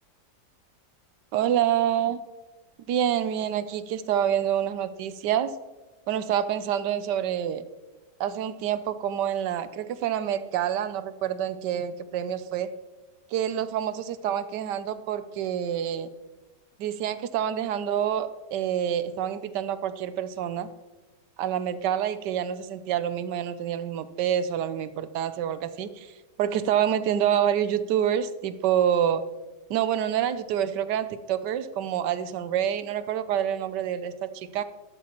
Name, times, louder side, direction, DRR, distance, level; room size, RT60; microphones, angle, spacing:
voice 1, 1.3-2.2 2.9-5.6 6.1-7.6 8.2-12.7 13.3-16.1 16.8-20.7 21.4-29.3 29.7-34.6, right 10 dB, 75° right, 13 dB, 1.3 m, -27 dB
13.0 x 12.5 x 3.0 m, 1.2 s
omnidirectional pair, 1.9 m